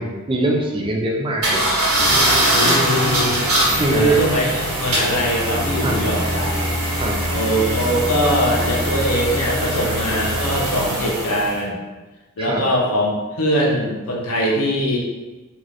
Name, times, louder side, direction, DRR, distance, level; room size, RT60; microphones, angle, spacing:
voice 1, 0.0-1.6 3.8-4.2 5.8-6.0 6.9-7.2 12.4-12.6, right 1 dB, 25° right, 0 dB, 0.3 m, -23 dB
sound 1, 1.4-11.6, right 1 dB, 75° right, 1.1 m, -21 dB
voice 2, 2.5-3.5 3.9-6.5 7.3-11.8 12.4-15.0, equal, 75° left, -2 dB, 0.7 m, -21 dB
2.5 x 2.4 x 3.2 m, 1.2 s
head